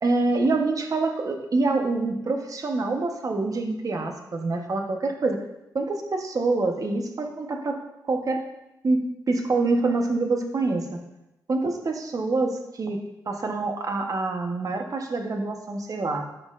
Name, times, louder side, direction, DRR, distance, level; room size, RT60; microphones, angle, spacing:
voice 1, 0.0-5.4 5.7-7.8 8.1-8.4 8.8-10.9 11.5-13.0 13.3-16.3, right 3 dB, 50° right, 4 dB, 1.1 m, -26 dB
9.4 x 6.3 x 2.5 m, 0.92 s
cardioid pair, 65°, 7 cm